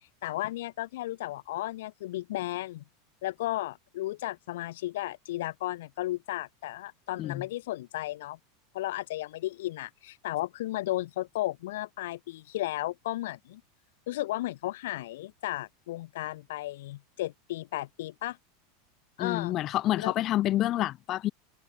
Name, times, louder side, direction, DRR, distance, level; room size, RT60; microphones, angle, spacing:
voice 1, 0.0-2.8 3.2-8.4 8.7-13.6 14.1-18.4 19.2-19.6 20.0-20.1, left 16 dB, 80° left, 0.8 m, -34 dB
voice 2, 19.2-21.3, left 14 dB, 40° left, 2.0 m, -28 dB
supercardioid pair, 130°, 0 cm